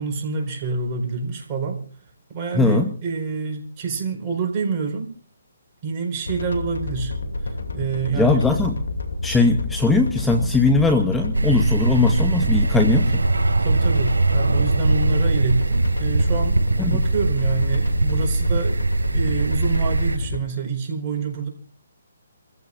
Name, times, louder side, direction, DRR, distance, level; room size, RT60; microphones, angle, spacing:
voice 1, 0.0-1.8 2.3-5.1 5.8-7.1 7.4-8.8 13.6-18.8 19.1-21.5, right 5 dB, 30° right, 3 dB, 4.6 m, -27 dB
voice 2, 2.5-2.9 8.2-8.8 9.2-13.2 16.8-17.0, left 3 dB, 5° left, 6 dB, 0.9 m, -19 dB
sound 1, 6.3-20.4, left 3 dB, 80° left, 2.7 m, -29 dB
sound 2, 11.3-20.2, right 2 dB, 90° right, 4.6 m, -21 dB
28.0 x 15.0 x 2.6 m, 0.41 s
hypercardioid pair, 145°, 0 cm